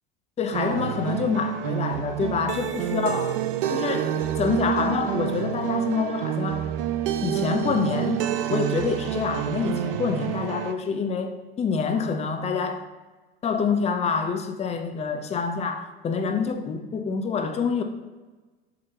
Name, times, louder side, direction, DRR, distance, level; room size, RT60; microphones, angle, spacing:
voice 1, 0.4-3.4 3.7-6.7 7.2-12.8 13.4-17.8, left 5 dB, 20° left, 0.7 m, -27 dB
sound 1, 0.5-10.7, right 11 dB, 65° right, 0.6 m, -28 dB
7.6 x 5.0 x 2.9 m
figure-of-eight pair, 75°, 29 cm